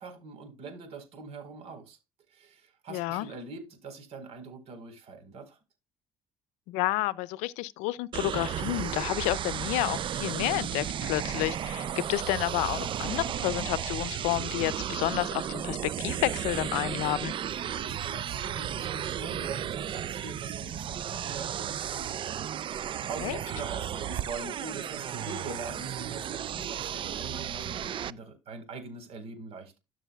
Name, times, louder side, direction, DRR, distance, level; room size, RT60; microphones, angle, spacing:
voice 1, 0.0-2.0 2.3-5.6 17.6-29.8, right 4 dB, 65° right, 4.2 m, -43 dB
voice 2, 2.9-3.3 6.7-17.3 23.2-23.4, left 18 dB, 85° left, 0.5 m, -30 dB
sound 1, 8.1-28.1, right 10 dB, 50° right, 0.5 m, -34 dB
13.5 x 6.3 x 2.3 m
supercardioid pair, 85°, 11 cm